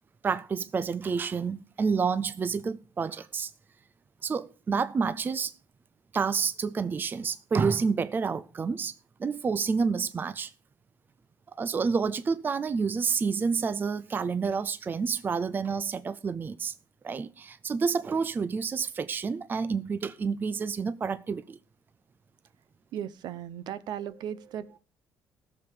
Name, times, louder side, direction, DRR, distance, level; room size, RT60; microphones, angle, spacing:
voice 1, 0.2-3.5 4.2-5.5 6.1-8.9 9.2-10.5 11.6-16.7 17.0-21.6, right 5 dB, 25° right, 0.5 m, -29 dB
voice 2, 22.9-24.8, right 10 dB, 70° right, 0.9 m, -37 dB
16.0 x 7.0 x 5.0 m
cardioid pair, 130°, 8 cm